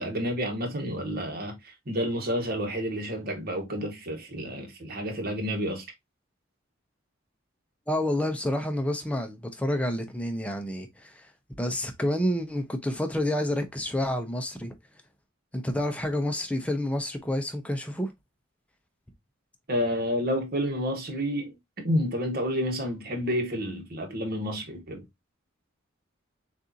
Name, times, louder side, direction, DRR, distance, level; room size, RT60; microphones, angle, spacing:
voice 1, 0.0-5.8 19.7-25.0, equal, 50° right, 1.4 m, -30 dB
voice 2, 7.9-11.3 11.6-14.7 15.5-18.1, left 1 dB, 5° left, 0.7 m, -29 dB
6.5 x 2.6 x 2.7 m
head